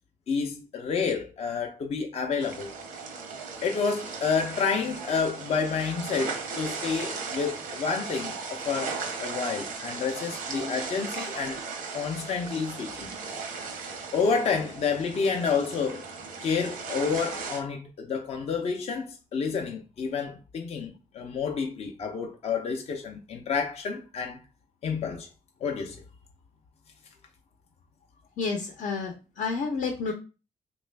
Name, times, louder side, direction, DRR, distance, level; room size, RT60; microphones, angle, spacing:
voice 1, 0.3-2.7 3.6-11.6 11.9-13.1 14.1-16.1 16.4-24.4 24.8-25.3 25.6-26.0, left 5 dB, 50° left, 0.5 m, -29 dB
sound 1, 2.4-17.6, right 5 dB, 90° right, 0.7 m, -37 dB
voice 2, 28.4-30.1, left 4 dB, 80° left, 0.7 m, -30 dB
3.2 x 2.4 x 3.2 m
cardioid pair, 100°, 13 cm